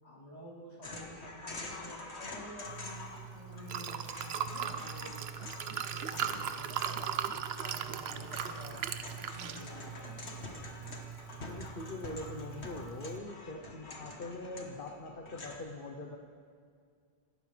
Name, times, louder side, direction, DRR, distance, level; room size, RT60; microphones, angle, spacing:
voice 1, 0.0-3.0 3.3-5.2 5.6-8.8 9.1-10.0, equal, 40° left, -9 dB, 4.8 m, -50 dB
sound 1, 0.8-3.3 3.5-15.6, left 2 dB, 80° left, 1.7 m, -47 dB
Liquid, 2.6-13.2, right 8 dB, 75° right, 0.9 m, -39 dB
voice 2, 11.5-16.2, left 2 dB, 55° left, 1 dB, 1.1 m, -42 dB
26.0 x 12.0 x 3.3 m, 2.1 s
omnidirectional pair, 1.1 m